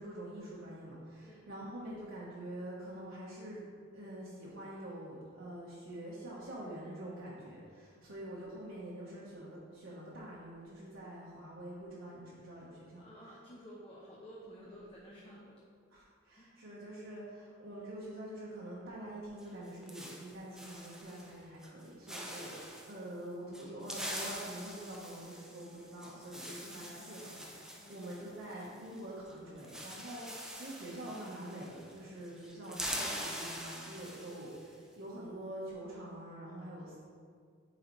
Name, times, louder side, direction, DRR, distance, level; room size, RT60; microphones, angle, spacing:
voice 1, 0.0-3.6 3.9-13.4 14.6-14.7 15.9-37.0, right 1 dB, 70° right, -7 dB, 1.1 m, -46 dB
voice 2, 13.0-15.6 16.4-16.5 26.6-27.0 27.4-27.5 27.8-28.0, equal, 30° left, -6 dB, 0.8 m, -53 dB
sound 1, 19.4-21.3 21.6-21.8 22.1-23.0 23.5-29.0 29.3-29.4 29.6-32.0 32.2-34.7, equal, 5° right, 0.6 m, -44 dB
9.2 x 4.0 x 3.1 m, 2.1 s
head